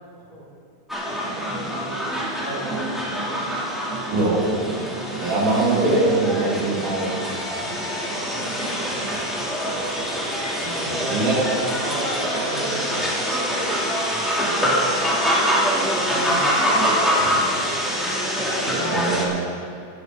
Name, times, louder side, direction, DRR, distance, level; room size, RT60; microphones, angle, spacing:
voice 1, 0.1-0.5 1.1-3.9 8.1-9.1 10.7-12.0 12.3-14.4 15.1-15.3 16.0-17.5, right 1 dB, 25° right, -4 dB, 4.1 m, -38 dB
sound 1, 0.9-19.2, equal, ahead, 2.5 m, -24 dB
voice 2, 4.1-7.7 10.6-11.4 18.7-19.5, right 2 dB, 75° right, -5 dB, 3.9 m, -24 dB
15.5 x 11.5 x 5.2 m, 2.3 s
omnidirectional pair, 3.7 m